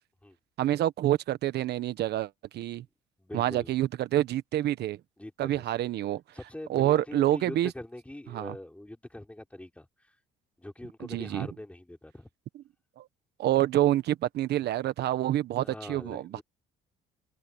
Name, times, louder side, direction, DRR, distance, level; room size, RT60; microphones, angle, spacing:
voice 1, 0.6-2.8 3.3-5.0 5.4-6.2 6.7-7.7 8.3-8.5 11.0-11.5 13.0-13.1 13.4-16.4, right 13 dB, 65° right, 1.4 m, -27 dB
voice 2, 3.2-3.7 5.2-5.6 6.3-10.1 10.6-12.3 15.6-16.4, left 1 dB, 5° left, 4.3 m, -43 dB
cardioid pair, 95°, 18 cm